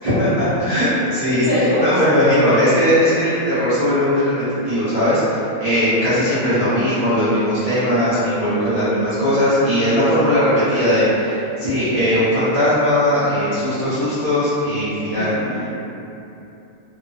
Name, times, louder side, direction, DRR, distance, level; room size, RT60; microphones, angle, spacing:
voice 1, 0.0-4.3 4.6-15.3, equal, 75° right, -14 dB, 0.3 m, -18 dB
voice 2, 1.3-1.9 15.1-15.8, equal, 60° left, -9 dB, 0.9 m, -23 dB
3.1 x 2.0 x 2.5 m, 2.9 s
omnidirectional pair, 1.7 m